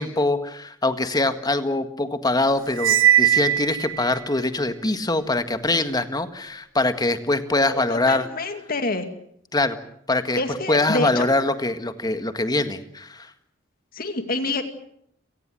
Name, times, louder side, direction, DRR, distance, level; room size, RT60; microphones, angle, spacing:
voice 1, 0.0-8.3 9.5-9.8 10.1-10.4 10.7-13.3, left 2 dB, 20° left, 9 dB, 1.7 m, -23 dB
Cymbal, 2.8-4.2, right 11 dB, 85° right, 1.2 m, -19 dB
voice 2, 7.6-9.1 10.4-11.3 13.9-14.7, left 2 dB, 50° left, 8 dB, 2.4 m, -27 dB
30.0 x 18.5 x 7.7 m, 0.71 s
head